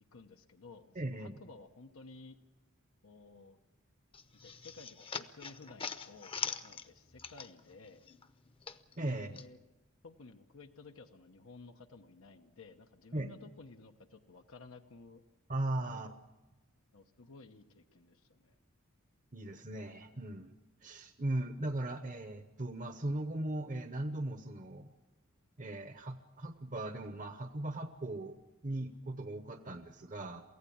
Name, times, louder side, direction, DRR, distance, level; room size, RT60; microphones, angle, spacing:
voice 1, 0.1-2.4 3.0-3.6 4.3-8.1 9.0-9.6 10.0-15.2 15.8-16.1 16.9-18.6, left 3 dB, 90° left, 5 dB, 1.0 m, -54 dB
voice 2, 1.0-1.3 9.0-9.4 13.1-13.3 15.5-16.1 19.3-20.5 20.8-24.9 25.6-28.3 28.6-30.4, right 1 dB, 40° right, 8 dB, 0.9 m, -38 dB
sound 1, 4.1-7.8 8.1-9.5, left 6 dB, 25° left, 0.8 m, -42 dB
23.5 x 16.0 x 8.6 m, 1.1 s
head